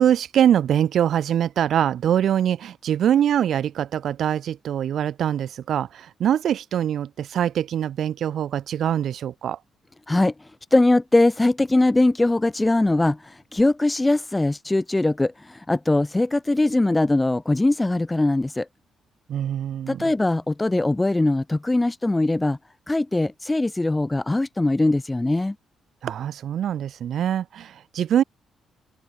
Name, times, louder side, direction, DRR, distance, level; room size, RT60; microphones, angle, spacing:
voice 1, 0.0-9.6 19.3-20.1 26.0-28.2, right 10 dB, 65° right, 3.3 m, -23 dB
voice 2, 10.7-18.7 19.9-22.6 22.9-25.5, left 2 dB, 15° left, 1.9 m, -21 dB
open air
cardioid pair, 100°, 0 cm